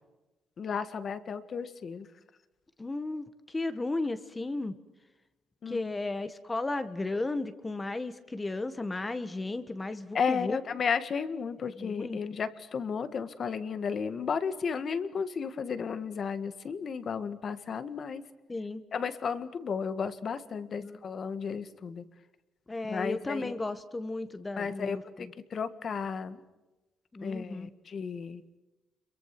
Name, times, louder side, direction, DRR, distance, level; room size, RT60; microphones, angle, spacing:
voice 1, 0.6-2.1 5.6-5.9 10.1-18.2 18.9-22.0 22.9-23.5 24.6-26.4 27.2-28.4, left 6 dB, 45° left, 12 dB, 1.8 m, -33 dB
voice 2, 2.8-4.7 5.7-10.6 11.8-12.2 18.5-18.8 20.8-21.0 22.7-25.3 27.1-27.7, left 2 dB, 15° left, 11 dB, 1.5 m, -34 dB
29.5 x 23.0 x 6.1 m, 1.1 s
cardioid pair, 135°, 0 cm